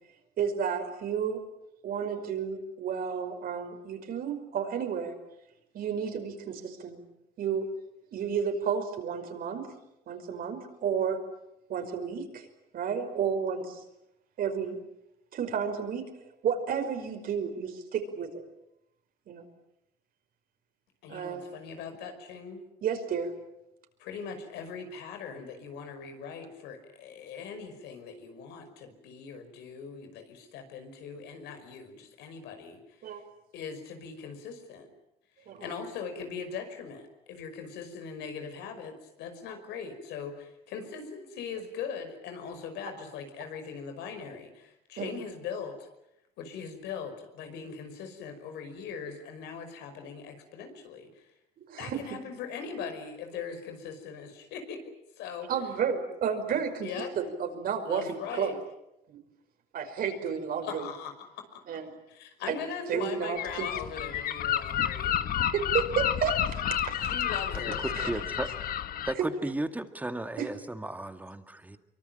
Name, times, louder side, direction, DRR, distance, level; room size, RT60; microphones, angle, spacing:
voice 1, 0.4-1.4 1.8-5.2 5.7-7.0 7.4-7.7 8.1-9.7 10.1-11.2 11.7-12.5 12.7-13.8 14.4-14.8 15.3-16.0 16.4-18.4 19.3-19.4 21.1-21.4 22.8-23.4 33.0-33.2 35.4-35.7 45.0-45.2 51.6-52.0 55.5-58.6 59.1-59.2 59.7-60.9 61.7-61.9 62.5-62.6 62.9-63.7 65.5-67.0 67.9-68.1 69.2-69.3 70.4-70.5, right 7 dB, 60° right, 5.5 m, -31 dB
voice 2, 21.0-22.6 24.0-33.2 33.5-34.9 35.4-45.9 46.4-51.3 51.8-54.8 55.2-55.5 56.8-57.2 57.8-58.5 60.6-61.8 62.1-65.2 66.9-67.8, left 6 dB, 85° left, 5.6 m, -40 dB
Gull seagull, 63.4-69.1, left 10 dB, 60° left, 1.4 m, -30 dB
voice 3, 67.8-68.5 69.1-71.8, right 1 dB, 10° right, 2.1 m, -34 dB
24.0 x 24.0 x 9.1 m
cardioid pair, 110°, 17 cm